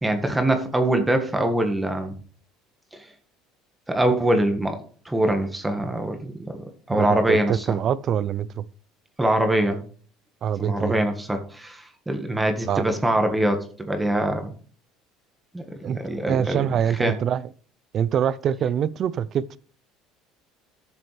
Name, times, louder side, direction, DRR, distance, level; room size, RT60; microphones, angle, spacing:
voice 1, 0.0-2.1 2.9-3.1 3.9-4.8 5.0-7.8 9.2-9.8 10.6-14.5 15.5-16.6 17.0-17.1, right 1 dB, 10° right, 1.6 m, -23 dB
voice 2, 6.9-8.6 10.4-11.0 12.7-12.8 15.8-16.0 16.3-17.4 17.9-19.6, right 9 dB, 50° right, 0.6 m, -24 dB
12.5 x 6.9 x 3.4 m
supercardioid pair, 100°, 0 cm